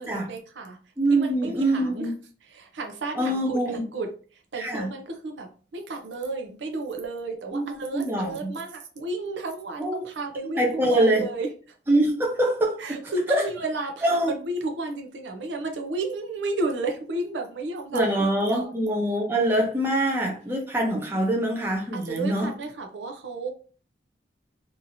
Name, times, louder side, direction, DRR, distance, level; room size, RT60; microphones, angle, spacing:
voice 1, 0.0-0.8 1.1-2.1 2.5-4.1 4.5-11.5 12.8-18.7 21.9-23.5, right 2 dB, 85° right, 0.6 m, -33 dB
voice 2, 1.0-2.1 3.2-3.9 4.6-4.9 7.5-8.5 9.8-10.0 10.6-11.2 11.9-13.0 13.3-13.4 14.0-14.3 17.9-22.5, right 1 dB, 15° right, 0.7 m, -24 dB
2.9 x 2.6 x 2.6 m
head